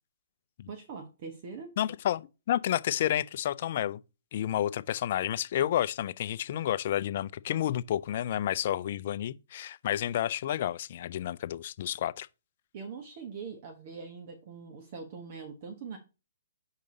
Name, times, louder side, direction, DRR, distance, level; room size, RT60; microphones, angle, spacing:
voice 1, 0.7-1.8 12.7-16.0, right 5 dB, 45° right, 1.3 m, -42 dB
voice 2, 1.8-2.2 2.5-4.0 4.3-12.3, left 11 dB, 50° left, 0.4 m, -30 dB
5.3 x 4.9 x 3.9 m
hypercardioid pair, 135°, 0 cm